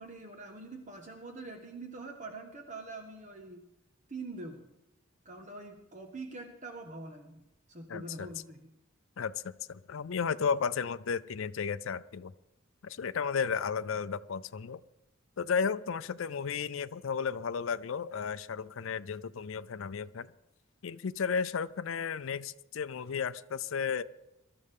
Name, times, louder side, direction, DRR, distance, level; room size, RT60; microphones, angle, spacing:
voice 1, 0.0-3.6 4.1-4.6 5.2-7.4 7.7-8.7, right 3 dB, 40° right, 3 dB, 1.3 m, -44 dB
voice 2, 7.9-8.3 9.2-12.3 12.8-14.8 15.4-20.3 20.8-24.0, left 6 dB, 70° left, 12 dB, 0.5 m, -33 dB
23.0 x 13.0 x 3.6 m, 0.90 s
head